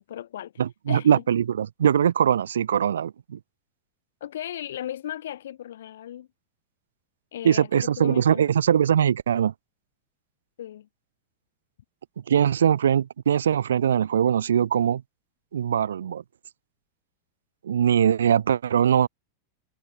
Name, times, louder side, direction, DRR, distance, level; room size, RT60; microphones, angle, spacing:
voice 1, 0.0-0.5 0.9-1.2 4.2-6.3 7.3-8.5 10.6-10.9, left 11 dB, 60° left, 6.2 m, -36 dB
voice 2, 0.6-3.4 7.4-9.5 12.3-15.0 15.5-16.2 17.6-19.1, right 9 dB, 65° right, 0.7 m, -21 dB
figure-of-eight pair, 90°, 0 cm